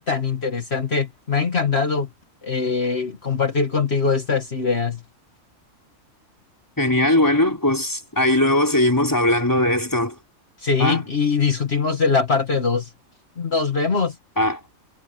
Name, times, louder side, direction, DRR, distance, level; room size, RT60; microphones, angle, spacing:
voice 1, 0.0-2.1 2.4-5.0 10.6-12.9 13.4-14.2, left 5 dB, 50° left, 2.0 m, -22 dB
voice 2, 6.8-10.1 10.8-11.0 14.4-14.6, left 1 dB, 15° left, 4.0 m, -19 dB
omnidirectional pair, 1.4 m